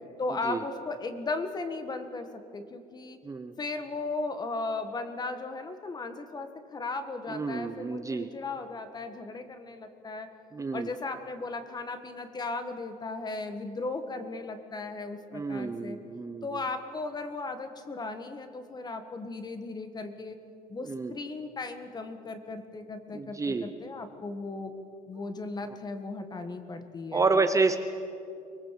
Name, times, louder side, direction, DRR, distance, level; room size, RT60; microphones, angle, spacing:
voice 1, 0.2-3.2 3.6-10.3 10.7-16.0 16.4-20.4 20.7-24.7 25.1-27.3, left 3 dB, 25° left, 8 dB, 1.7 m, -36 dB
voice 2, 7.3-8.3 10.5-10.9 15.3-16.4 20.9-21.1 23.1-23.7 27.1-27.8, right 3 dB, 20° right, 8 dB, 0.9 m, -29 dB
24.0 x 20.0 x 7.6 m, 2.6 s
cardioid pair, 130°, 16 cm